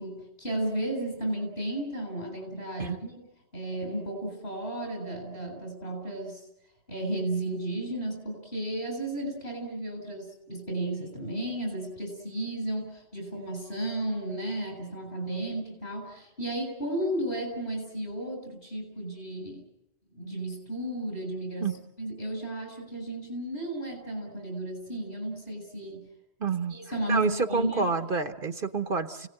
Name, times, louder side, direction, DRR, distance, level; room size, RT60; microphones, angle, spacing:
voice 1, 0.0-3.3 3.5-6.5 6.9-19.6 20.1-26.1 26.7-27.9, right 1 dB, 55° left, 5 dB, 7.6 m, -33 dB
voice 2, 26.4-26.8 27.1-29.3, right 4 dB, 50° right, 9 dB, 1.2 m, -28 dB
29.5 x 18.5 x 8.9 m, 0.90 s
omnidirectional pair, 1.1 m